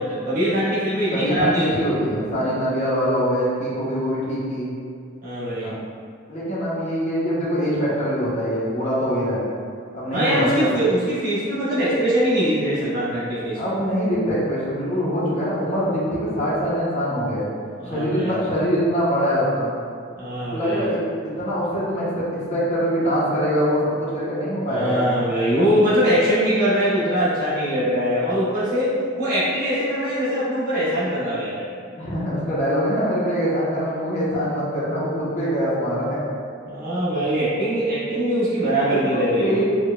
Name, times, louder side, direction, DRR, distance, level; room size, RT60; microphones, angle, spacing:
voice 1, 0.0-1.9 5.2-5.7 10.1-13.6 17.8-18.3 20.2-20.9 24.7-31.6 36.7-39.6, equal, 40° right, -11 dB, 1.1 m, -22 dB
voice 2, 1.1-4.7 5.6-5.8 6.3-9.5 9.9-10.8 13.5-17.5 17.8-19.7 20.5-25.1 32.0-36.2 38.8-39.6, equal, 30° left, -9 dB, 0.6 m, -23 dB
4.5 x 2.2 x 2.2 m, 2.3 s
head